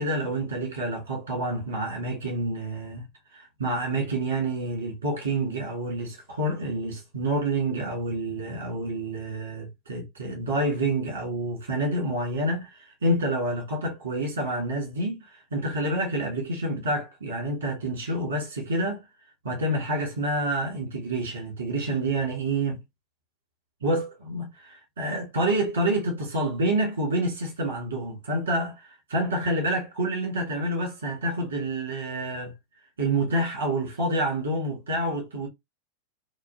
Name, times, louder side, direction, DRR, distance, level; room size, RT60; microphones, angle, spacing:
voice 1, 0.0-3.1 3.3-19.0 19.4-22.8 23.8-32.5 33.0-35.5, right 1 dB, 75° right, 2.5 m, -28 dB
4.8 x 2.2 x 3.0 m
figure-of-eight pair, 90°, 0 cm